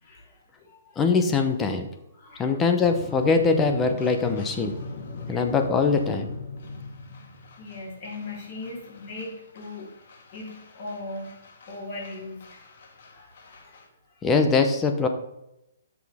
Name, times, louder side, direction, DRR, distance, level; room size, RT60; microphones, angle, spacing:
voice 1, 0.0-1.0 2.1-2.6 5.3-5.4 7.6-9.9 10.3-11.3 11.7-12.6 13.1-13.8, left 2 dB, 30° left, -5 dB, 3.7 m, -39 dB
voice 2, 1.0-1.9 2.4-4.7 5.3-6.3 14.2-15.1, left 4 dB, 10° left, 6 dB, 0.8 m, -22 dB
sound 1, 2.8-13.9, left 3 dB, 50° left, 1.8 m, -40 dB
12.0 x 6.1 x 3.6 m, 0.85 s
hypercardioid pair, 175°, 0 cm